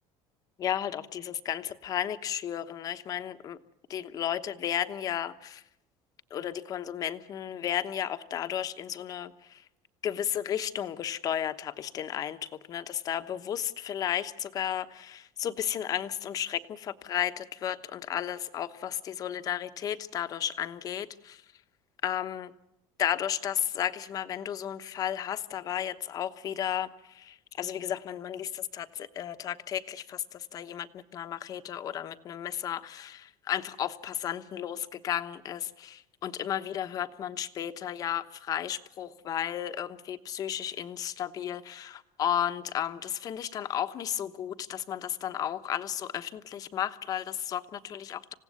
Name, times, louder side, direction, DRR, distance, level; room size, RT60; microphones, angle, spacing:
voice 1, 0.6-3.6 3.9-5.6 6.3-9.6 10.0-21.4 22.0-22.5 23.0-48.3, left 10 dB, 35° left, 10 dB, 1.1 m, -33 dB
27.5 x 17.0 x 9.4 m, 0.87 s
cardioid pair, 165°, 10 cm